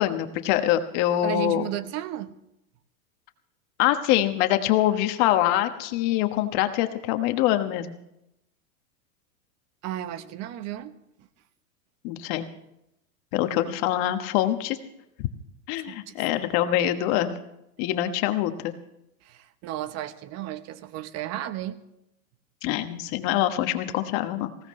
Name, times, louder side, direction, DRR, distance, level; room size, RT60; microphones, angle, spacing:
voice 1, 0.0-1.6 3.8-8.0 12.0-12.4 13.3-14.8 15.2-15.3 15.7-17.4 17.8-18.7 22.6-24.5, left 13 dB, 45° left, 8 dB, 1.3 m, -24 dB
voice 2, 1.2-2.3 9.8-11.3 15.8-16.1 19.2-21.8, right 13 dB, 35° right, 12 dB, 1.0 m, -34 dB
19.5 x 16.5 x 3.2 m, 0.84 s
hypercardioid pair, 125°, 43 cm